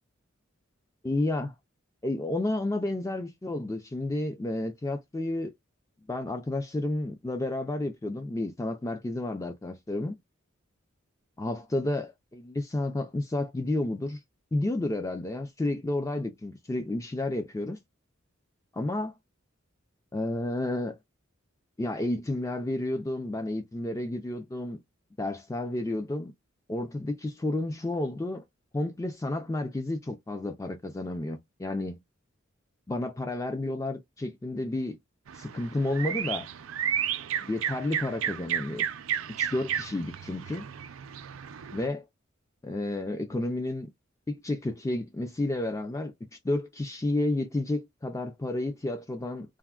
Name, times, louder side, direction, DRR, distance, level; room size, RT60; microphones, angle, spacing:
voice 1, 1.0-1.5 2.0-5.5 6.1-10.2 11.4-14.2 14.5-17.8 18.7-19.1 20.1-21.0 21.8-24.8 25.2-26.3 26.7-28.4 28.7-32.0 32.9-35.0 35.3-36.5 37.4-38.8 39.4-40.7 41.7-42.1 42.6-43.9 44.3-49.6, left 2 dB, 15° left, 0.3 m, -31 dB
sound 1, 35.3-41.9, right 9 dB, 80° right, 0.4 m, -33 dB
3.4 x 2.1 x 2.3 m
head